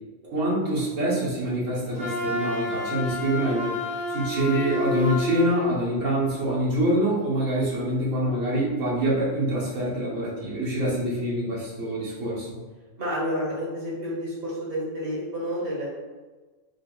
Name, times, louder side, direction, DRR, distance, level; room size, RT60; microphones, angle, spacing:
voice 1, 0.3-3.8 4.1-12.6, right 1 dB, 70° right, -6 dB, 1.3 m, -25 dB
Wind instrument woodwind instrument, 1.9-5.7, left 2 dB, 15° right, 0.8 m, -29 dB
voice 2, 13.0-15.9, equal, 50° right, -6 dB, 1.3 m, -30 dB
3.5 x 3.0 x 2.3 m, 1.3 s
omnidirectional pair, 1.3 m